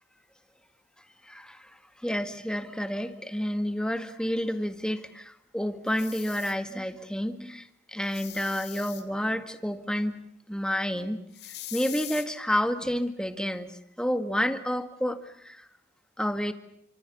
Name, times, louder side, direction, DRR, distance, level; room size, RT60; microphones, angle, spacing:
voice 1, 1.2-11.2 11.7-15.7 16.2-16.5, equal, 5° left, 8 dB, 2.0 m, -30 dB
sound 1, 5.9-6.5 8.0-9.0 11.3-12.3, left 13 dB, 65° left, 3.6 m, -41 dB
30.0 x 26.0 x 7.0 m, 0.76 s
head